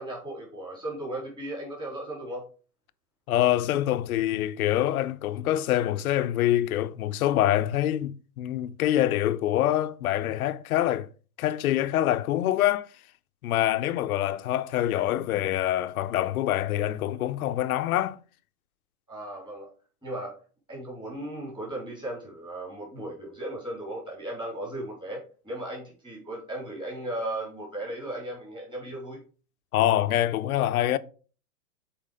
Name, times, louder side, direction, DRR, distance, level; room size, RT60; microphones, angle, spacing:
voice 1, 0.0-2.4 19.1-19.7 20.0-20.4 20.7-29.2, right 1 dB, 10° right, 3.7 m, -36 dB
voice 2, 3.3-11.1 11.4-12.9 13.4-18.2 29.7-31.0, left 13 dB, 65° left, 0.7 m, -25 dB
7.5 x 4.5 x 5.0 m
hypercardioid pair, 145°, 48 cm